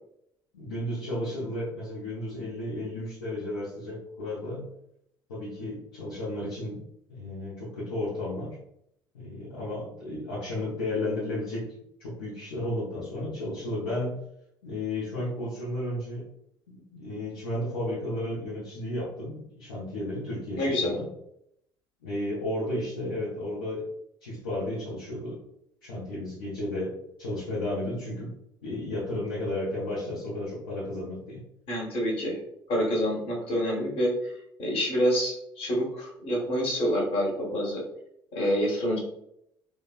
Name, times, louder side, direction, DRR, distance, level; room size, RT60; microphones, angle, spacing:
voice 1, 0.5-4.7 5.3-6.8 7.1-8.6 9.1-11.7 12.0-14.1 14.6-16.3 16.7-21.1 22.0-23.9 24.2-25.4 25.8-28.3 28.6-31.4, left 1 dB, 80° left, -9 dB, 0.7 m, -33 dB
voice 2, 20.6-20.9 31.7-32.4 32.7-34.3 34.6-37.8 38.3-39.0, equal, 55° left, -3 dB, 1.2 m, -27 dB
3.1 x 2.1 x 2.4 m, 0.75 s
figure-of-eight pair, 55°, 12 cm